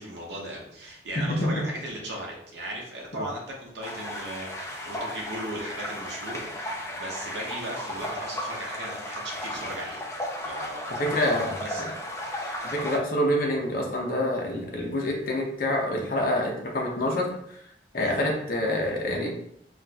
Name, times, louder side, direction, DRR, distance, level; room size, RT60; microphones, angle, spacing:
voice 1, 0.0-10.1 10.4-11.1 11.6-11.8 18.0-18.1, right 1 dB, 75° right, -2 dB, 0.7 m, -37 dB
sound 1, 3.8-13.0, left 1 dB, 15° left, 0.5 m, -35 dB
voice 2, 11.0-11.9 12.6-17.6 17.9-19.3, left 1 dB, 55° left, -1 dB, 0.7 m, -27 dB
4.0 x 2.4 x 2.3 m, 0.74 s
head